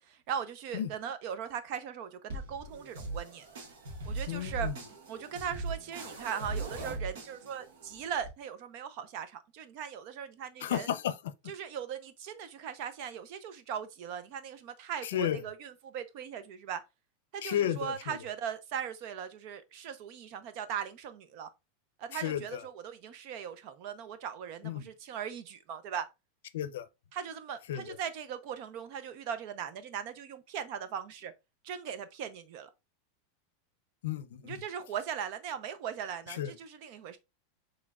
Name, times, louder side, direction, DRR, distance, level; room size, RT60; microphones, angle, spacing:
voice 1, 0.0-3.5 4.1-4.7 5.1-10.9 11.5-16.8 17.3-21.5 22.0-26.1 27.1-31.3 31.6-32.7 34.4-37.2, right 8 dB, 45° right, 0.6 m, -39 dB
sound 1, 2.3-8.3, right 3 dB, 80° right, 1.4 m, -40 dB
voice 2, 4.3-4.8 10.6-11.2 15.0-15.4 17.4-18.2 22.1-22.6 24.6-24.9 26.5-26.9 27.7-28.0 34.0-34.6 36.3-36.5, left 11 dB, 85° left, 0.5 m, -33 dB
6.1 x 3.2 x 2.3 m
supercardioid pair, 165°, 0 cm